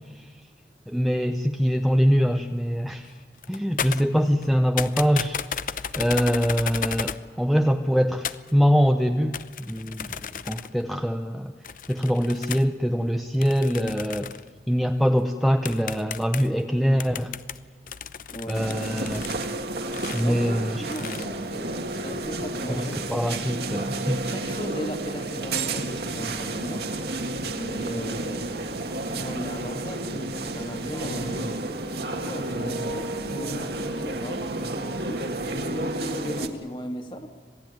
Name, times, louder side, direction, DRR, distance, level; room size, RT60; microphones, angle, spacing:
voice 1, 0.9-3.1 3.5-10.1 10.4-11.5 11.9-14.3 14.7-17.3 18.5-19.3 20.1-20.8 22.7-24.3, equal, ahead, 5 dB, 0.7 m, -23 dB
sound 1, 3.0-3.1 3.4-4.5 4.8-7.3 8.2-8.5 9.3-10.8 11.6-12.7 13.4-14.5 15.2-15.3 15.7-16.6 17.0-19.5 19.9-20.2 20.9-21.3, left 7 dB, 50° left, 0.6 m, -34 dB
voice 2, 18.3-18.7 20.2-23.2 24.0-26.9 27.6-28.6 29.1-31.5 32.1-34.5 35.1-37.3, equal, 25° left, 5 dB, 2.0 m, -37 dB
sound 2, 18.5-36.5, right 2 dB, 65° right, 1.8 m, -31 dB
27.0 x 18.0 x 9.2 m, 1.5 s
head